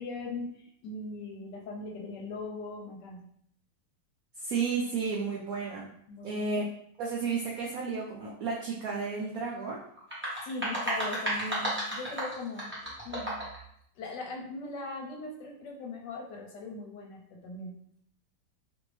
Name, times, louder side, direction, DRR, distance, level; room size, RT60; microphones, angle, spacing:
voice 1, 0.0-3.3 6.1-6.4 10.4-12.7 13.0-13.4 14.0-17.7, left 3 dB, 75° left, 0 dB, 1.2 m, -40 dB
voice 2, 4.4-5.9 6.2-6.6 7.0-9.8, right 4 dB, 80° right, -3 dB, 0.8 m, -32 dB
sound 1, 10.0-13.6, right 1 dB, 15° right, 0.4 m, -33 dB
2.9 x 2.6 x 3.1 m, 0.70 s
omnidirectional pair, 2.1 m